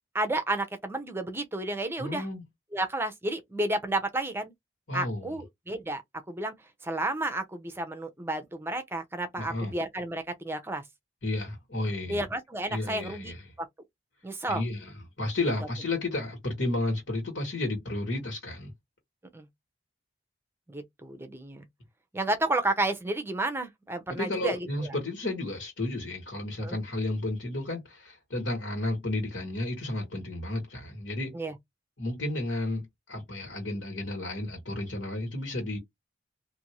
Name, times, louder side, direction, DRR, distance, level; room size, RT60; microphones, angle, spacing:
voice 1, 0.1-2.3 2.7-4.5 4.9-6.0 6.3-6.5 6.8-10.8 12.1-13.3 13.6-13.7 14.2-14.6 19.3-19.5 20.7-21.6 22.1-24.9 26.6-26.8 31.3-31.5, right 2 dB, 10° right, 0.6 m, -31 dB
voice 2, 2.0-2.4 4.9-5.4 9.4-9.7 11.2-12.2 12.7-13.4 14.5-18.7 24.1-31.4 32.0-35.8, left 2 dB, 80° left, 1.6 m, -32 dB
2.6 x 2.6 x 2.9 m
head